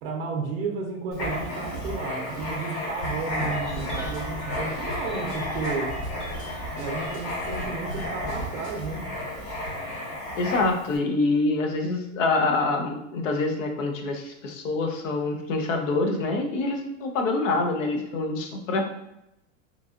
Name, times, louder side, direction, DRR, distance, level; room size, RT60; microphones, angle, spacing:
voice 1, 0.0-6.0 6.8-9.1, right 4 dB, 50° right, 1 dB, 0.5 m, -33 dB
Writing, 1.1-10.9, left 1 dB, 50° left, 1.3 m, -32 dB
sound 1, 3.0-4.2 4.5-5.7 6.0-6.5 6.8-8.7, equal, 35° left, 0.9 m, -40 dB
sound 2, 3.3-8.3, left 1 dB, ahead, 0.4 m, -44 dB
voice 2, 10.4-18.9, left 3 dB, 75° left, 4 dB, 0.7 m, -26 dB
3.1 x 2.6 x 2.4 m, 0.85 s
supercardioid pair, 165°, 39 cm